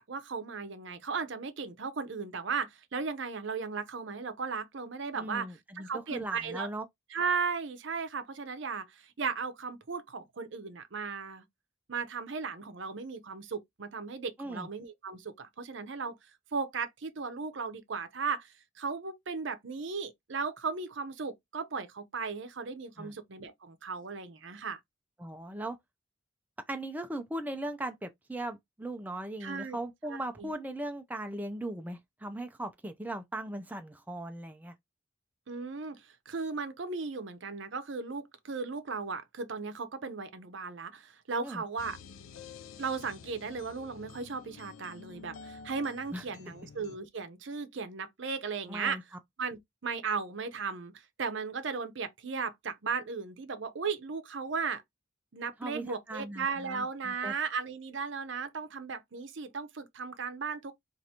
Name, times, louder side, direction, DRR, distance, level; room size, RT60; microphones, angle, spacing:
voice 1, 0.0-5.5 5.8-6.7 7.1-11.4 11.9-16.1 16.5-24.8 29.4-29.8 30.0-30.5 35.5-42.0 42.8-49.0 49.4-54.8 55.3-60.8, right 5 dB, 65° right, 0.6 m, -36 dB
voice 2, 5.2-6.8 14.4-14.7 23.0-23.1 25.2-25.8 26.7-34.8 41.4-41.6 46.1-46.2 48.7-49.0 55.6-57.3, right 1 dB, 10° right, 0.4 m, -38 dB
sound 1, 41.8-47.0, left 5 dB, 85° left, 0.4 m, -50 dB
4.6 x 2.5 x 2.8 m
head